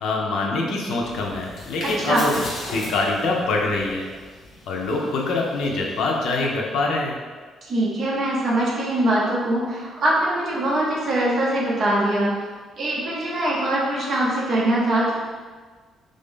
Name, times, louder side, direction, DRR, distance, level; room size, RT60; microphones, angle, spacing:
voice 1, 0.0-2.3 2.7-4.1 4.7-7.2, left 3 dB, 70° left, 0 dB, 0.6 m, -24 dB
sound 1, 0.9-6.7, left 1 dB, 45° left, 1.1 m, -38 dB
voice 2, 1.8-2.2 7.7-12.3 12.8-15.1, right 1 dB, 40° right, -4 dB, 0.8 m, -22 dB
3.3 x 2.6 x 3.6 m, 1.4 s
cardioid pair, 165°, 0 cm